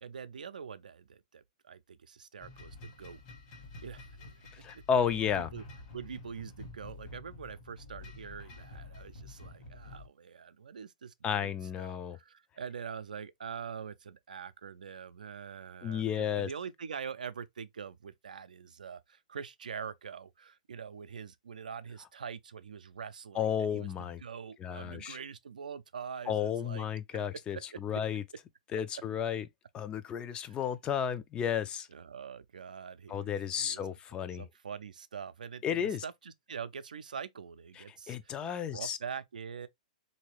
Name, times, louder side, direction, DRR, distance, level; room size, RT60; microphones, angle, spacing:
voice 1, 0.0-3.2 3.8-4.3 4.7-5.6 5.9-11.5 11.8-26.9 31.9-33.8 34.3-39.7, right 6 dB, 85° right, 0.4 m, -44 dB
sound 1, 2.4-10.1, left 2 dB, 50° left, 1.3 m, -49 dB
voice 2, 4.6-5.5 11.2-12.2 15.8-16.5 23.3-24.2 24.6-25.2 26.3-28.2 28.7-29.5 29.7-31.9 33.1-34.4 35.6-36.0 37.8-39.0, left 8 dB, 25° left, 0.3 m, -33 dB
2.9 x 2.7 x 3.1 m
hypercardioid pair, 120°, 4 cm